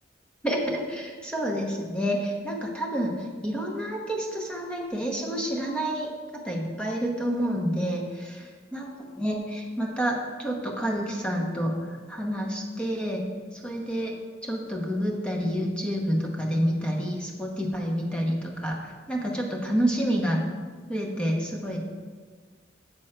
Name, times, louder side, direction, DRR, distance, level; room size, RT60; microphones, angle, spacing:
voice 1, 0.4-13.3 13.5-14.1 14.4-20.5 20.9-21.8, equal, 5° left, -1 dB, 0.9 m, -29 dB
7.6 x 6.3 x 4.4 m, 1.5 s
head